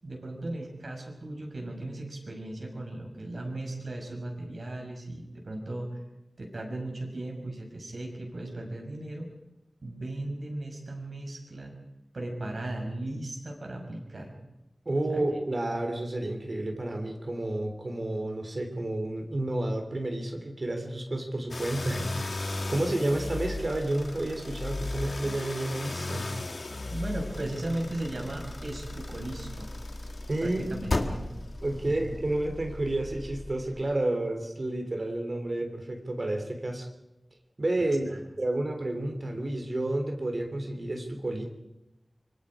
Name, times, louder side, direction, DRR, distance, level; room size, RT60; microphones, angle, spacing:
voice 1, 0.0-5.9 6.4-9.3 9.8-11.7 12.1-14.3 15.1-15.2 26.9-29.7 30.4-31.3 31.9-32.0 38.1-38.2, right 1 dB, 65° right, 1 dB, 6.2 m, -37 dB
voice 2, 14.8-22.4 22.7-26.3 30.3-31.2 31.6-36.9 37.6-38.1 38.4-41.4, right 1 dB, 50° right, 4 dB, 3.3 m, -30 dB
sound 1, 21.5-33.9, left 2 dB, 65° left, 2.1 m, -36 dB
25.5 x 24.5 x 5.0 m, 0.94 s
wide cardioid pair, 75°, 0 cm